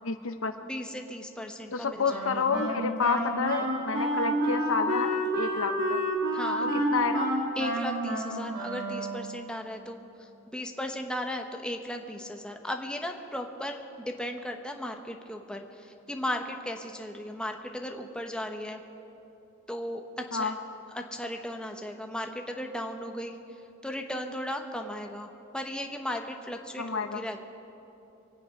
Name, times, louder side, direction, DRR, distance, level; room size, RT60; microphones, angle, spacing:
voice 1, 0.0-0.5 1.7-6.0 6.6-7.3 20.3-20.5 26.8-27.2, left 5 dB, 80° left, 9 dB, 0.8 m, -30 dB
voice 2, 0.7-2.5 6.3-6.7 7.6-18.8 19.7-20.5 20.9-23.4 23.8-27.5, left 1 dB, 5° left, 3 dB, 0.9 m, -36 dB
Wind instrument woodwind instrument, 2.1-9.5, right 1 dB, 60° right, 3.1 m, -29 dB
24.0 x 9.3 x 5.4 m, 2.9 s
head